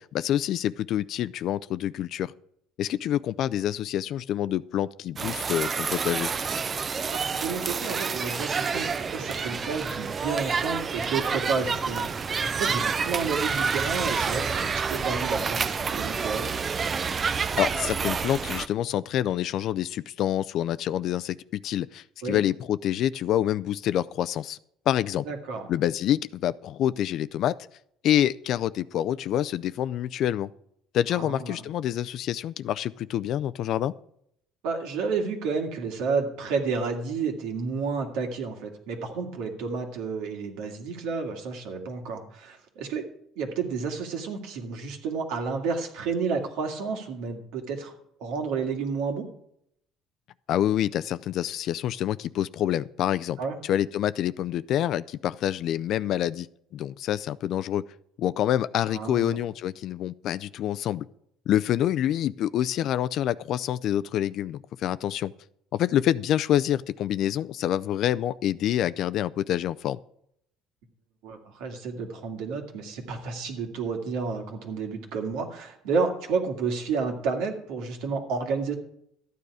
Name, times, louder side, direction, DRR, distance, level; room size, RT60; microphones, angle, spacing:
voice 1, 0.0-2.3 2.8-6.3 17.6-24.6 24.9-25.2 25.7-27.5 28.0-30.5 30.9-33.9 50.5-56.5 56.7-57.8 58.2-61.0 61.5-65.3 65.7-70.0, left 11 dB, 55° left, 16 dB, 0.4 m, -27 dB
sound 1, 5.2-18.7, right 5 dB, 30° right, 0.5 m, -28 dB
voice 2, 7.1-16.5 22.2-22.4 25.3-25.7 31.1-31.6 34.6-43.0 43.4-49.3 53.4-53.6 58.9-59.4 71.2-78.7, right 5 dB, 75° right, 3 dB, 2.2 m, -31 dB
13.5 x 9.4 x 4.9 m, 0.72 s
cardioid pair, 130°, 0 cm